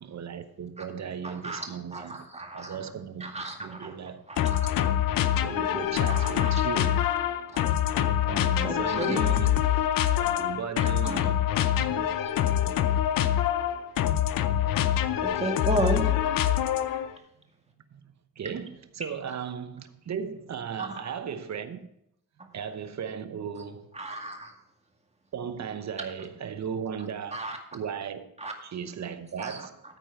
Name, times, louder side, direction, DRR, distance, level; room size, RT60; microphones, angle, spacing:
voice 1, 0.0-2.3 2.5-4.2 5.4-7.1 8.2-9.6 10.1-12.1 17.9-18.0 18.4-21.9 22.5-23.9 25.3-28.3 28.6-29.8, right 7 dB, 55° right, 0.9 m, -36 dB
voice 2, 1.2-1.7 1.9-2.8 3.2-3.9 4.3-4.9 6.1-6.5 7.5-7.6 8.6-9.4 10.2-10.3 10.8-11.2 12.6-12.7 15.2-16.0 20.8-21.0 24.0-24.5 27.3-27.6 28.4-28.5 29.4-29.6, right 2 dB, 20° right, 2.1 m, -33 dB
sound 1, 4.4-17.1, left 11 dB, 80° left, 0.7 m, -25 dB
13.5 x 4.5 x 5.7 m
cardioid pair, 75°, 34 cm